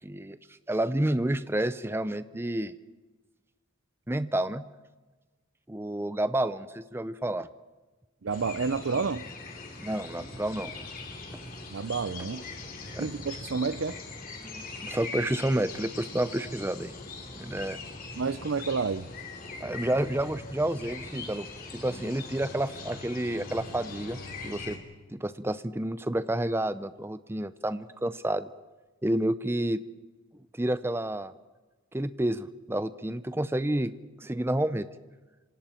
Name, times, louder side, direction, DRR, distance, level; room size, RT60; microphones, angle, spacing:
voice 1, 0.0-0.4 0.7-2.7 4.1-4.6 5.7-7.5 9.8-10.7 12.9-13.1 14.4-16.9 17.4-17.8 19.6-21.5 21.7-24.8 25.1-28.5 29.0-29.8 30.6-31.3 31.9-33.9 34.2-34.9, right 1 dB, 10° right, 0.6 m, -30 dB
voice 2, 8.2-9.3 11.7-12.4 13.0-14.0 18.2-19.1, right 5 dB, 70° right, 0.6 m, -30 dB
sound 1, 8.3-24.8, left 3 dB, 45° left, 3.2 m, -41 dB
sound 2, 13.7-17.7, left 6 dB, 75° left, 5.1 m, -59 dB
Bowed string instrument, 21.9-26.2, left 4 dB, 60° left, 1.3 m, -49 dB
27.0 x 26.0 x 4.4 m
head